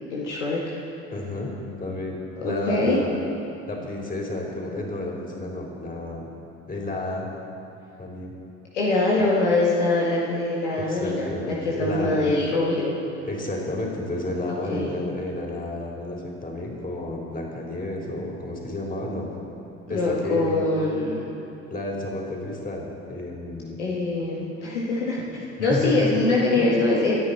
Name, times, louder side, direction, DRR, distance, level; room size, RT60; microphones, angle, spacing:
voice 1, 0.1-0.8 2.4-3.0 8.7-13.0 14.7-14.9 19.9-21.3 23.8-27.1, left 2 dB, 75° left, -5 dB, 1.9 m, -23 dB
voice 2, 1.1-1.5 1.8-3.1 3.7-6.2 6.7-7.3 8.0-8.3 10.8-12.3 13.2-19.3 19.9-20.6 21.7-23.8 25.6-26.2 26.5-26.7, left 1 dB, 25° left, -1 dB, 4.1 m, -31 dB
25.5 x 9.7 x 4.2 m, 2.8 s
figure-of-eight pair, 55°, 36 cm